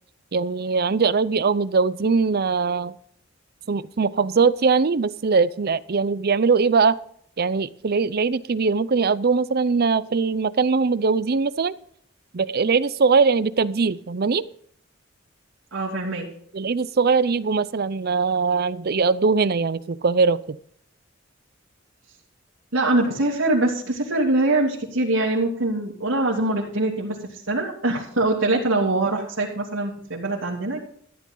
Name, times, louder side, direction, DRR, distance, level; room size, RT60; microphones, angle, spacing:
voice 1, 0.3-2.9 3.7-7.0 7.4-11.7 12.3-14.4 16.5-20.6, right 4 dB, 50° right, 17 dB, 0.6 m, -21 dB
voice 2, 15.7-16.3 22.7-30.8, right 2 dB, 85° right, -4 dB, 3.2 m, -23 dB
14.5 x 11.0 x 3.9 m, 0.63 s
head